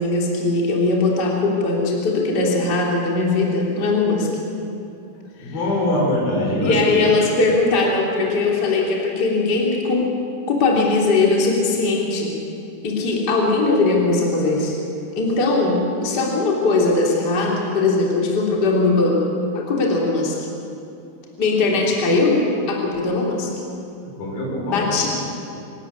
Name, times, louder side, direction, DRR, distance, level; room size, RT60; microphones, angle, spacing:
voice 1, 0.0-4.3 5.4-5.6 6.6-10.1 10.5-12.3 12.8-14.8 15.1-19.3 19.5-20.4 21.4-23.5 24.7-25.1, left 3 dB, 30° left, -2 dB, 3.1 m, -20 dB
voice 2, 5.4-7.1 24.0-25.0, left 1 dB, 70° left, -2 dB, 6.8 m, -23 dB
25.5 x 13.0 x 9.6 m, 2.7 s
omnidirectional pair, 4.5 m